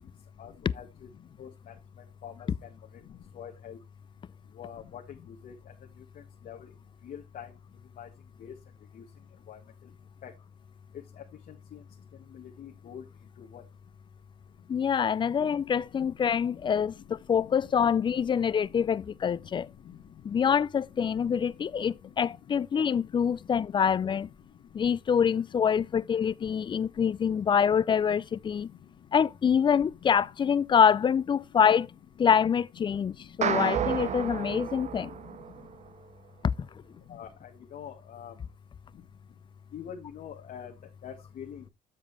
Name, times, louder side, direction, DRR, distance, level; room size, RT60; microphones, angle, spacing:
voice 1, 0.4-0.9 1.4-1.5 2.2-2.3 3.3-3.8 4.6-5.0 5.3-5.5 6.4-6.6 7.0-7.5 8.0-8.1 8.4-8.5 9.0-9.1 9.5-9.6 10.2-10.3 11.7-11.8 12.3-13.0 13.4-13.6 16.0-16.1 37.1-37.3 37.7-38.3 39.7-40.7 41.0-41.7, left 8 dB, 55° left, 1.4 m, -43 dB
voice 2, 14.7-19.7 20.2-24.3 24.7-28.7 29.1-31.9 32.2-35.1 36.4-36.7, left 7 dB, 30° left, 0.4 m, -25 dB
sound 1, 33.4-35.9, right 8 dB, 40° right, 0.9 m, -31 dB
7.5 x 7.3 x 3.3 m
cardioid pair, 110°, 17 cm